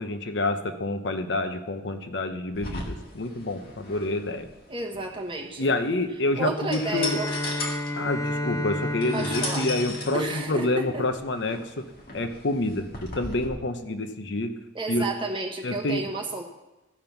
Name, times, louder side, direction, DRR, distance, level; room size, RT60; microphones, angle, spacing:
voice 1, 0.0-4.5 5.6-7.2 8.0-11.9 12.1-14.5 14.9-15.1 15.6-16.1, left 2 dB, 65° left, 8 dB, 0.8 m, -28 dB
sound 1, 2.5-13.5, left 2 dB, 50° left, 1.8 m, -37 dB
voice 2, 4.7-5.7 6.4-7.3 9.1-9.7 10.1-11.0 14.7-16.4, right 2 dB, 25° right, 1 dB, 1.2 m, -31 dB
Bowed string instrument, 6.8-11.2, left 1 dB, 20° left, 0.5 m, -32 dB
14.5 x 5.3 x 5.8 m, 1.0 s
head